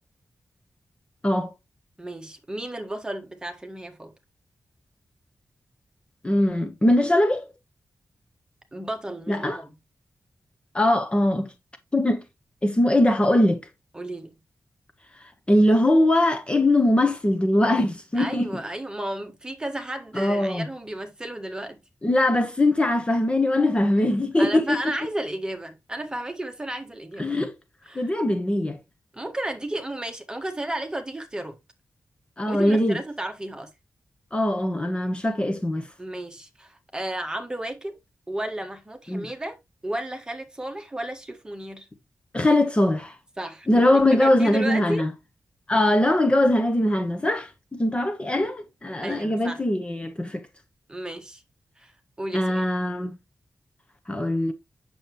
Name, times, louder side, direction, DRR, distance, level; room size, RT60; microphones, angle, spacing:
voice 1, 2.0-4.1 8.7-9.7 13.9-14.3 18.2-21.8 24.4-27.4 27.9-28.1 29.1-31.6 32.5-33.7 36.0-38.0 38.3-39.6 39.8-41.9 43.4-45.1 49.0-49.6 50.9-51.4 51.8-51.9 52.2-52.7, right 1 dB, 15° right, 1.6 m, -33 dB
voice 2, 6.2-7.5 9.3-9.6 10.7-11.5 11.9-12.2 12.6-13.6 15.5-18.5 20.1-20.7 22.0-24.8 27.2-27.5 27.9-28.8 32.4-33.0 34.3-35.9 39.1-39.3 42.3-43.1 43.7-45.1 45.7-50.4 52.3-53.1 54.1-54.5, left 1 dB, 20° left, 1.0 m, -21 dB
8.5 x 7.0 x 3.0 m
wide cardioid pair, 140°, 6 cm